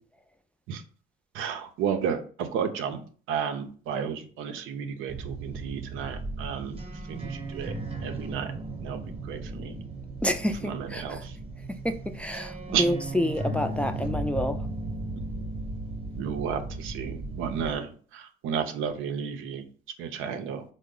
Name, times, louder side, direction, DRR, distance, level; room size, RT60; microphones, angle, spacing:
voice 1, 1.3-3.0 3.3-6.8 7.1-7.7 8.0-8.5 8.8-9.8 10.6-11.3 12.7-12.8 16.2-19.7 20.0-20.6, right 7 dB, 90° right, 0.5 m, -32 dB
sound 1, 5.1-17.8, right 2 dB, 30° right, 0.8 m, -36 dB
voice 2, 10.2-11.3 11.7-14.6, left 1 dB, 5° left, 0.3 m, -29 dB
3.7 x 2.0 x 3.7 m
cardioid pair, 90°, 20 cm